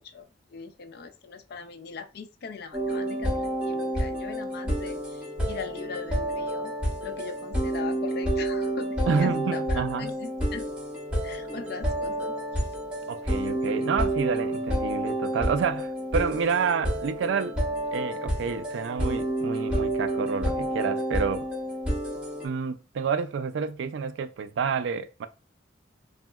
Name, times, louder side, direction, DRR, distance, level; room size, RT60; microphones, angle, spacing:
voice 1, 0.0-6.7 7.0-10.7 11.2-12.7, left 5 dB, 55° left, 0.4 m, -40 dB
sound 1, 2.7-22.5, right 1 dB, 5° right, 1.1 m, -29 dB
voice 2, 9.1-10.1 13.1-17.6 17.9-21.5 22.4-25.3, right 6 dB, 80° right, 0.3 m, -29 dB
3.7 x 2.1 x 2.2 m
head